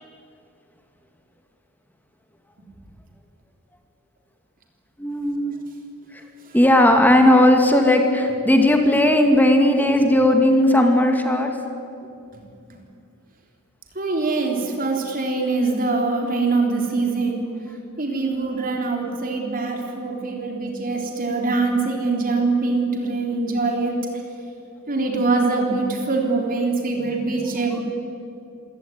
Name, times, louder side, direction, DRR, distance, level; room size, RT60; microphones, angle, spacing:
voice 1, 5.0-5.6 6.1-6.2 6.5-11.6, left 1 dB, 10° left, 4 dB, 2.3 m, -16 dB
voice 2, 14.0-17.5 18.0-24.0 24.9-27.8, right 3 dB, 40° right, 2 dB, 3.8 m, -23 dB
26.5 x 17.0 x 9.6 m, 2.5 s
head